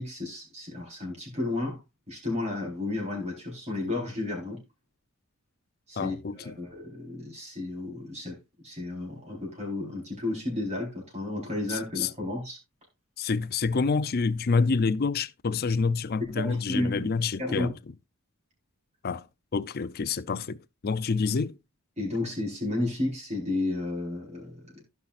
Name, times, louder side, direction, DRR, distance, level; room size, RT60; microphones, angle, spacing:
voice 1, 0.0-1.8 2.1-4.6 5.9-6.1 6.6-8.4 8.6-12.6 16.2-17.1 17.4-17.7 22.0-24.8, left 2 dB, 30° right, 4.1 m, -32 dB
voice 2, 6.0-6.6 11.7-12.1 13.2-17.7 19.0-19.3 19.5-21.6, left 4 dB, 45° left, 0.5 m, -27 dB
15.5 x 5.6 x 2.5 m
head